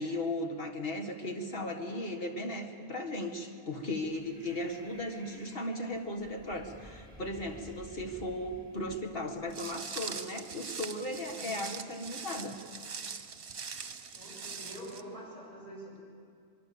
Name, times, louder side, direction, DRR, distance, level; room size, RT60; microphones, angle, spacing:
voice 1, 0.0-12.6, left 1 dB, 60° left, 3 dB, 2.0 m, -36 dB
Breathing, 3.8-9.8, equal, 10° right, 3.9 m, -54 dB
Walk footsteps, 9.5-15.0, right 6 dB, 65° right, 1.2 m, -42 dB
voice 2, 14.1-16.0, equal, 40° left, -5 dB, 8.2 m, -46 dB
24.5 x 22.5 x 7.0 m, 2.3 s
omnidirectional pair, 1.1 m